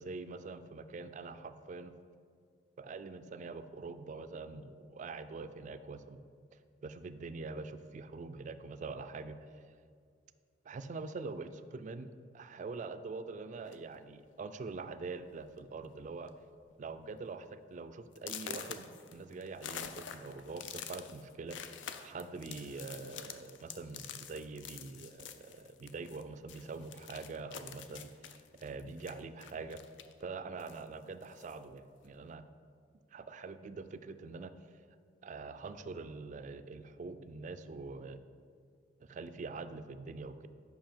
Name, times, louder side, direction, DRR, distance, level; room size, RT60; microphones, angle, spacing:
voice 1, 0.0-1.9 2.8-6.2 6.8-9.4 10.7-16.3 16.8-29.8 30.2-32.4 33.1-34.5 35.2-38.2 39.0-40.5, right 4 dB, 40° right, 11 dB, 0.3 m, -44 dB
sound 1, 13.6-14.0 14.8-14.9 15.3-15.5 15.8-16.3 16.7-16.8 17.3-17.4 18.2-26.2 26.5-30.2 30.6-31.6, left 8 dB, 75° left, 0.4 m, -47 dB
7.5 x 5.4 x 4.5 m, 2.2 s
head